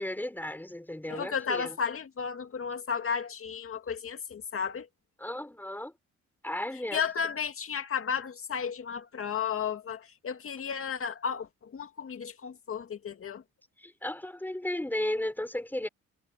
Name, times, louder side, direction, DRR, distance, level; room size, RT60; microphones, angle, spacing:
voice 1, 0.0-1.8 5.2-5.9 6.4-7.0 13.8-15.9, left 1 dB, 5° left, 5.2 m, -34 dB
voice 2, 1.1-4.9 6.9-13.4, left 6 dB, 45° left, 2.3 m, -33 dB
cardioid pair, 90°, 30 cm